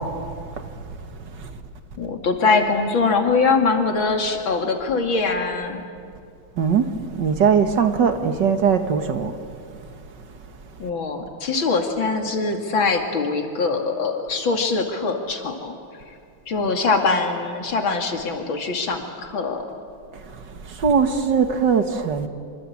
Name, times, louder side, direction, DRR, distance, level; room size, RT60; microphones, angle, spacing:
voice 1, 2.0-5.8 10.8-15.8 16.5-19.6, left 4 dB, 80° left, 4 dB, 3.2 m, -22 dB
voice 2, 7.2-9.3 20.8-22.3, right 6 dB, 65° right, 7 dB, 2.2 m, -20 dB
26.5 x 25.5 x 8.6 m, 2.3 s
omnidirectional pair, 2.1 m